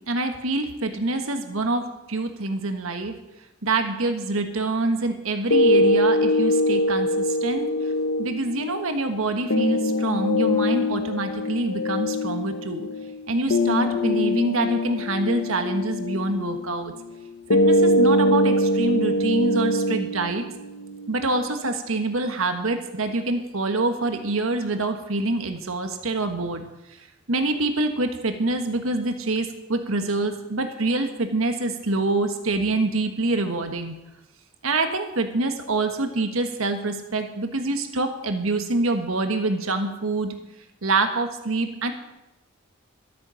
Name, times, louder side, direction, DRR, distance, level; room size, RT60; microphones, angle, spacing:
voice 1, 0.1-3.1 3.6-7.7 8.2-12.9 13.3-16.9 17.6-20.4 21.1-26.6 27.3-33.9 34.6-40.3 40.8-41.9, right 2 dB, 80° right, 6 dB, 1.4 m, -26 dB
sound 1, 5.5-21.5, left 1 dB, 60° left, 0.8 m, -23 dB
13.0 x 9.3 x 7.0 m, 0.97 s
head